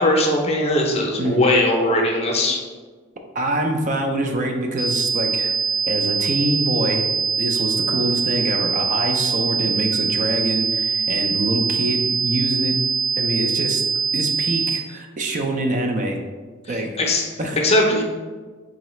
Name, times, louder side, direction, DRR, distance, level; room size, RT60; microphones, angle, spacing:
voice 1, 0.0-2.6 16.7-17.2 17.6-18.0, left 1 dB, 30° left, 1 dB, 0.6 m, -19 dB
voice 2, 3.3-5.5 5.9-7.0 7.4-12.8 13.2-13.8 14.1-16.2 16.7-16.9 17.4-17.6, right 1 dB, 40° right, 3 dB, 0.4 m, -25 dB
sound 1, 4.8-14.8, right 5 dB, 75° right, 0.9 m, -23 dB
3.7 x 3.1 x 3.1 m, 1.4 s
head